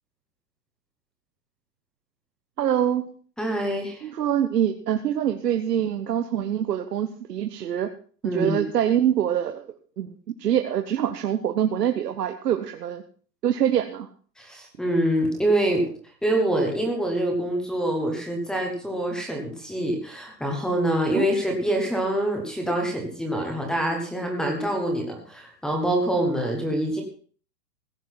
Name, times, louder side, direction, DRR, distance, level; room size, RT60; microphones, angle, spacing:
voice 1, 2.6-3.1 4.0-7.9 8.3-10.1 10.4-13.0 13.4-14.1 21.1-21.3, right 10 dB, 70° right, 6 dB, 1.3 m, -25 dB
voice 2, 3.4-4.0 8.2-8.6 14.4-15.9 16.2-27.0, right 1 dB, ahead, 3 dB, 1.0 m, -25 dB
16.0 x 7.7 x 5.8 m, 0.43 s
hypercardioid pair, 170°, 49 cm